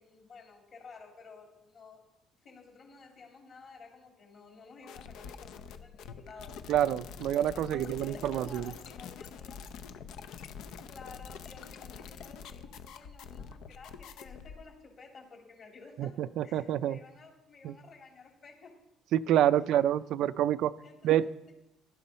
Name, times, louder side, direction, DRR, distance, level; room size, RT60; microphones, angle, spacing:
voice 1, 0.0-2.0 2.4-6.8 7.5-9.6 10.9-18.8 20.8-21.5, left 4 dB, 40° left, 1 dB, 3.1 m, -52 dB
sound 1, 4.8-14.6, left 6 dB, 65° left, 0.7 m, -46 dB
voice 2, 6.7-8.7 16.0-17.0 17.6-17.7 19.1-20.7 21.0-21.2, right 11 dB, 60° right, 13 dB, 0.4 m, -27 dB
16.0 x 11.5 x 4.3 m, 0.92 s
cardioid pair, 155°, 0 cm